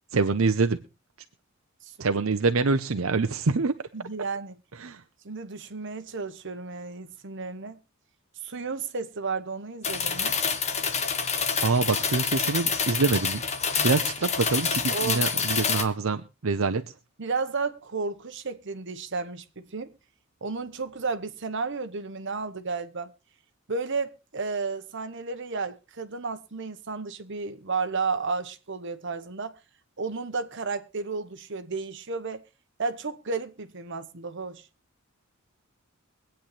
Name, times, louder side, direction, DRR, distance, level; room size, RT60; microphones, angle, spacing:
voice 1, 0.1-0.8 2.0-3.8 4.8-5.0 11.6-13.4 13.8-16.8, right 4 dB, 80° right, 0.7 m, -25 dB
voice 2, 3.9-4.5 5.2-7.8 8.4-10.4 14.9-15.3 17.2-19.9 20.4-23.1 23.7-29.6 30.0-32.4 32.8-34.7, right 4 dB, 65° right, 1.1 m, -32 dB
sound 1, 9.8-15.8, left 6 dB, 35° left, 1.3 m, -27 dB
23.5 x 9.0 x 3.3 m
head